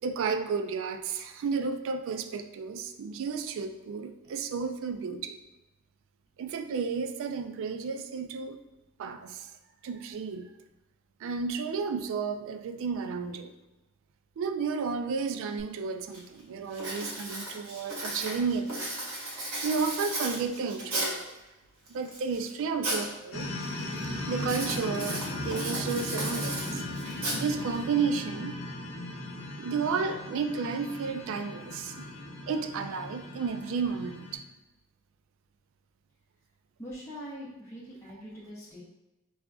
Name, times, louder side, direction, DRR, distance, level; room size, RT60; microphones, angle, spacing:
voice 1, 0.0-5.4 6.4-8.6 9.0-9.5 9.8-10.5 11.2-13.5 14.4-18.9 19.6-21.3 21.9-26.8 27.3-28.6 29.6-32.1 32.5-34.4, right 5 dB, 65° right, 8 dB, 0.3 m, -32 dB
Writing, 15.6-15.7 16.1-16.4 16.7-21.3 21.9-23.1 23.4-23.8 24.4-27.8, right 1 dB, 90° right, 1.2 m, -35 dB
sound 1, 23.3-34.4, left 1 dB, 85° left, 0.8 m, -37 dB
voice 2, 36.8-38.8, equal, 10° left, -8 dB, 0.5 m, -43 dB
4.8 x 2.4 x 2.3 m, 1.0 s
head